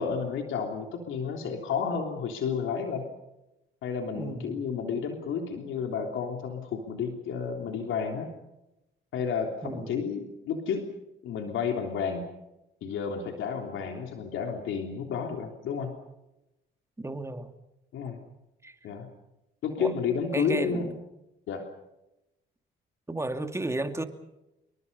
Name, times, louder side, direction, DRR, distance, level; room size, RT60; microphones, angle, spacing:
voice 1, 0.0-3.1 3.8-8.3 9.1-10.9 11.2-12.3 12.8-15.9 17.9-18.2 18.8-19.1 19.6-20.9 21.5-21.7, left 6 dB, 80° left, 3 dB, 3.3 m, -31 dB
voice 2, 4.1-4.6 9.6-10.0 17.0-17.5 18.6-18.7 19.8-19.9 20.3-21.0 23.1-24.0, right 2 dB, 15° right, 7 dB, 2.5 m, -33 dB
28.0 x 23.5 x 5.5 m, 0.93 s
cardioid pair, 90°, 20 cm